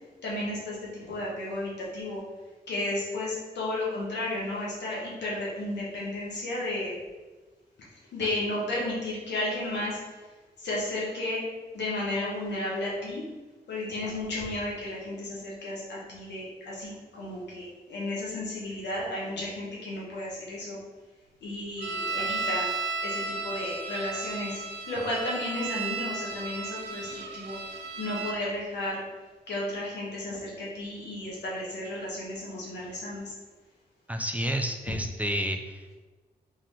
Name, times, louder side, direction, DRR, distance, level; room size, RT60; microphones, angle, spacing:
voice 1, 0.2-2.2 2.7-7.0 8.1-10.0 10.6-11.4 11.7-13.2 13.7-20.8 21.4-22.7 23.0-27.6 28.0-29.0 29.5-33.3, left 1 dB, 85° left, -5 dB, 1.2 m, -33 dB
sound 1, 21.8-28.4, right 4 dB, 80° right, 0.4 m, -34 dB
voice 2, 34.1-35.9, equal, 10° right, 4 dB, 0.4 m, -30 dB
3.4 x 2.8 x 3.6 m, 1.3 s
cardioid pair, 50°, 18 cm